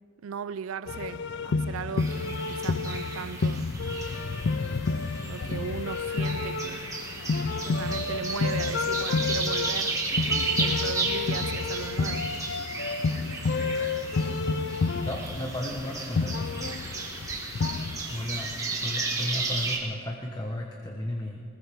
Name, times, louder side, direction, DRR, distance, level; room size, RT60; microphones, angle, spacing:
voice 1, 0.2-3.7 5.2-6.9 7.7-10.0 10.5-12.3, right 7 dB, 70° right, 0.4 m, -37 dB
sound 1, 0.9-18.6, left 4 dB, 55° left, 0.4 m, -30 dB
sound 2, 2.0-19.8, right 3 dB, 15° right, 1.5 m, -34 dB
voice 2, 15.1-16.5 18.1-18.5 18.8-21.4, left 1 dB, 20° left, 1.0 m, -34 dB
20.0 x 19.5 x 3.5 m
head